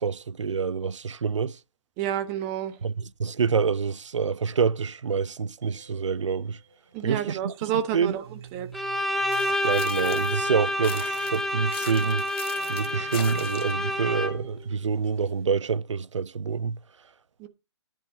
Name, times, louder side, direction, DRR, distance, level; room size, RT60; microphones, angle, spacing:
voice 1, 0.0-1.6 2.8-2.9 3.2-6.6 7.0-7.5 7.9-8.1 9.6-12.2 12.7-16.8, right 6 dB, 90° right, 0.7 m, -27 dB
voice 2, 2.0-2.8 6.9-8.2 8.5-8.7 17.4-17.5, right 11 dB, 25° right, 1.3 m, -29 dB
sound 1, 5.6-15.5, right 4 dB, 55° right, 5.2 m, -49 dB
Bowed string instrument, 8.7-14.6, left 1 dB, ahead, 0.6 m, -28 dB
sound 2, 9.3-10.4 10.8-13.8, left 8 dB, 55° left, 1.7 m, -41 dB
10.5 x 5.5 x 6.7 m
hypercardioid pair, 155°, 15 cm